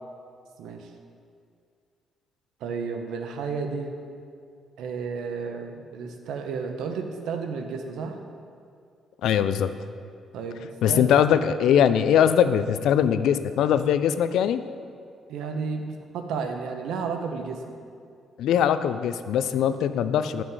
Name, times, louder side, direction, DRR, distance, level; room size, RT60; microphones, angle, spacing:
voice 1, 0.6-0.9 2.6-4.0 4.8-8.2 10.3-11.2 15.3-17.8, right 5 dB, 85° right, 5 dB, 0.8 m, -32 dB
voice 2, 9.2-9.7 10.8-14.6 18.4-20.4, left 9 dB, 70° left, 12 dB, 0.4 m, -21 dB
9.0 x 6.1 x 4.8 m, 2.3 s
cardioid pair, 175°, 0 cm